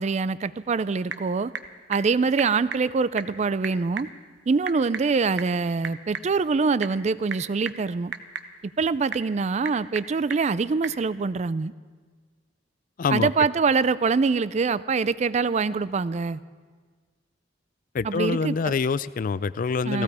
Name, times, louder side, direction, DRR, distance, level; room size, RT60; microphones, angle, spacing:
voice 1, 0.0-1.5 1.9-4.1 4.5-8.1 8.6-11.7 13.1-16.4 18.0-18.7 19.9-20.0, right 4 dB, 35° right, 17 dB, 0.4 m, -24 dB
Typing / Telephone, 0.5-11.0, right 6 dB, 65° right, 0.8 m, -39 dB
voice 2, 13.0-13.3 17.9-20.0, left 5 dB, 45° left, 18 dB, 0.4 m, -25 dB
16.5 x 15.0 x 4.8 m, 1.5 s
head